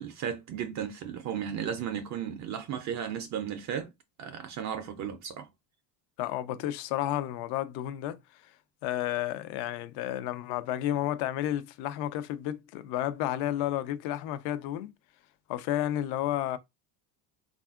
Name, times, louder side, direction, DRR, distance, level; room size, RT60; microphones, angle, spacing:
voice 1, 0.0-3.9 4.2-5.5, right 8 dB, 40° right, 0.4 m, -35 dB
voice 2, 6.2-8.2 8.8-14.9 15.5-16.6, left 12 dB, 60° left, 0.5 m, -31 dB
3.4 x 2.4 x 2.3 m
supercardioid pair, 110°, 44 cm